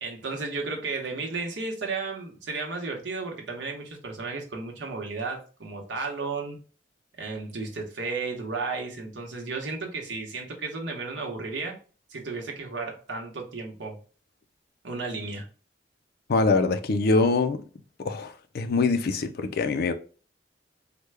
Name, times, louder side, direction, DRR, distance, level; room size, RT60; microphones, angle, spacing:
voice 1, 0.0-6.6 7.2-11.8 12.1-14.0 14.8-15.5, right 3 dB, 85° right, 0.9 m, -33 dB
voice 2, 16.3-17.6 18.0-19.9, left 3 dB, 60° left, 0.4 m, -24 dB
3.3 x 2.1 x 3.3 m
head